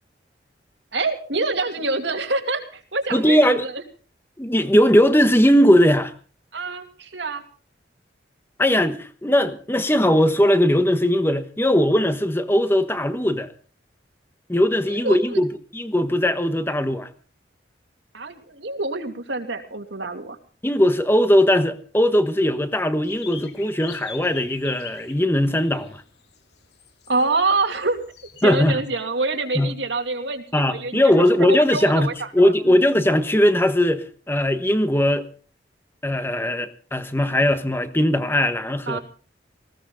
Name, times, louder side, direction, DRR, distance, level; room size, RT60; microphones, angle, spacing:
voice 1, 0.9-3.7 6.5-7.4 14.9-15.4 18.1-20.4 27.1-28.0 28.4-32.9 38.9-39.0, right 3 dB, 80° right, 2.8 m, -26 dB
voice 2, 3.1-3.6 4.4-6.1 8.6-13.5 14.5-17.1 20.6-26.0 28.4-28.8 29.5-29.7 30.5-35.3 36.0-39.0, left 1 dB, 15° left, 1.3 m, -19 dB
sound 1, 23.1-28.5, left 7 dB, 65° left, 2.7 m, -43 dB
19.5 x 16.5 x 3.8 m
head